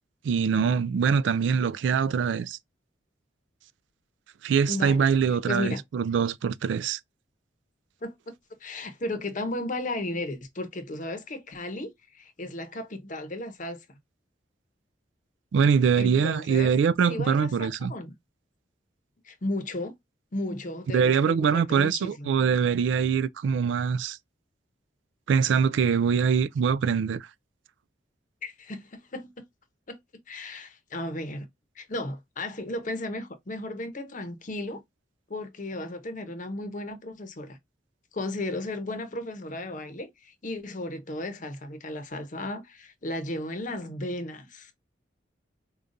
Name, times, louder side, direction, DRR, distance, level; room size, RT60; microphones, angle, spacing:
voice 1, 0.2-2.6 4.4-7.0 15.5-17.9 20.9-24.2 25.3-27.3, right 6 dB, 70° right, 0.3 m, -23 dB
voice 2, 4.7-5.0 5.5-5.8 8.0-8.1 8.6-13.8 16.0-16.7 17.1-18.1 19.2-19.9 20.3-22.3 28.4-29.3 29.9-30.0 30.3-31.5 31.8-34.8 35.3-37.6 38.1-44.7, left 1 dB, 45° left, 0.8 m, -34 dB
5.0 x 2.3 x 2.5 m
head